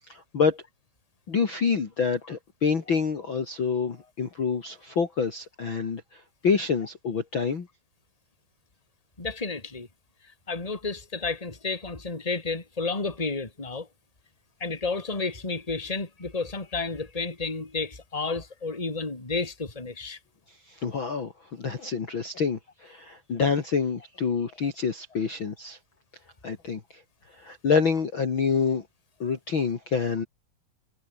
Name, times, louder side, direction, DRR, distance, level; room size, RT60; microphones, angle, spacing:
voice 1, 0.1-0.6 1.3-7.7 20.7-25.8 26.4-26.8 27.4-28.8 29.2-30.2, left 5 dB, 40° left, 2.7 m, -27 dB
voice 2, 9.2-9.9 10.5-13.9 14.6-20.2, left 3 dB, 10° left, 3.1 m, -31 dB
omnidirectional pair, 4.0 m